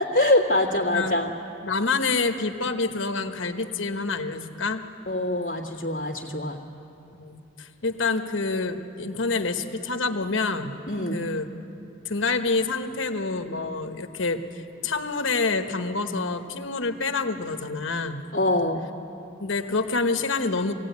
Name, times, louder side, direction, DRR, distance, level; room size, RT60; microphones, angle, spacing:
voice 1, 0.0-1.3 5.1-6.6 10.9-11.2 18.3-18.8, left 1 dB, 40° left, -6 dB, 2.0 m, -24 dB
voice 2, 1.6-4.8 7.1-10.8 11.1-11.4 12.0-18.2 19.4-20.7, left 3 dB, 75° left, 7 dB, 1.2 m, -27 dB
22.5 x 17.0 x 9.5 m, 2.9 s
head